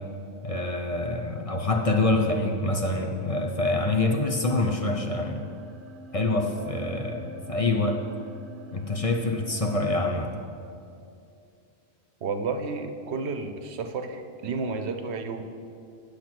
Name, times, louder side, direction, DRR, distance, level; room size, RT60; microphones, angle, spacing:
voice 1, 0.4-5.4 6.1-8.0 8.7-10.3, left 2 dB, 40° left, 3 dB, 0.7 m, -26 dB
sound 1, 4.3-9.9, right 2 dB, 55° right, 0.8 m, -46 dB
voice 2, 12.2-15.4, right 4 dB, 90° right, 7 dB, 1.0 m, -31 dB
8.6 x 6.6 x 5.9 m, 2.5 s
omnidirectional pair, 1.1 m